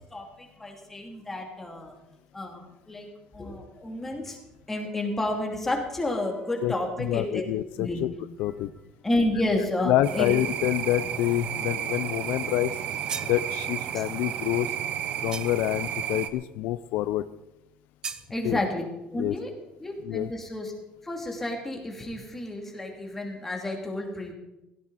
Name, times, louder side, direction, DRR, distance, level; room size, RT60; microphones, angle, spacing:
voice 1, 0.1-1.9 2.3-3.1 3.3-4.4 4.7-7.5 7.8-8.0 9.0-10.3 13.9-14.0 18.3-18.8 19.1-19.5 19.8-20.7 21.0-24.3, left 1 dB, 10° left, 1 dB, 2.8 m, -30 dB
voice 2, 7.0-8.1 8.4-8.7 9.9-12.7 13.2-14.8 15.2-17.2 18.4-18.6 19.2-19.3 20.0-20.3, left 14 dB, 70° left, 13 dB, 0.5 m, -27 dB
sound 1, 10.0-16.3, right 10 dB, 50° right, 0.9 m, -32 dB
sound 2, 12.8-13.4 15.3-15.8 18.0-18.3, right 6 dB, 25° right, 0.8 m, -37 dB
16.5 x 16.5 x 4.2 m, 0.94 s
cardioid pair, 165°, 3 cm